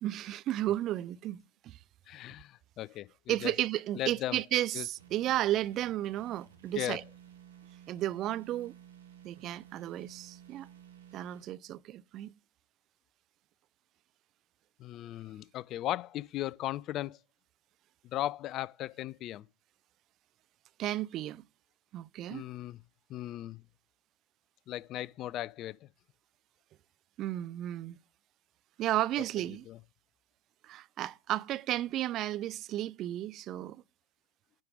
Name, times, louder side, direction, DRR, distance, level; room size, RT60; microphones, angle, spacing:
voice 1, 0.0-1.8 3.3-7.0 7.9-8.7 9.2-10.7 11.1-12.3 20.8-21.4 21.9-22.4 27.2-27.9 28.8-29.7 30.6-33.8, right 13 dB, 40° right, 0.4 m, -33 dB
voice 2, 2.1-3.5 4.0-4.4 4.7-4.8 6.8-7.0 14.8-17.2 18.0-19.4 22.3-22.8 23.1-23.6 24.7-25.9 29.7-29.8, left 14 dB, 40° left, 0.3 m, -37 dB
sound 1, 5.0-11.4, right 9 dB, 75° right, 2.0 m, -54 dB
10.5 x 4.9 x 4.9 m
figure-of-eight pair, 85°, 0 cm